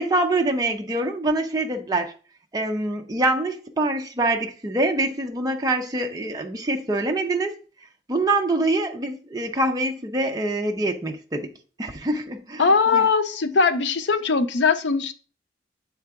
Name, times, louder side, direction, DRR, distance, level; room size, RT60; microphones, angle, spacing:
voice 1, 0.0-2.1 2.5-7.6 8.1-11.5 11.8-13.1, right 2 dB, 20° right, 0.5 m, -25 dB
voice 2, 12.6-15.1, left 4 dB, 75° left, 0.6 m, -20 dB
7.5 x 4.5 x 3.5 m
head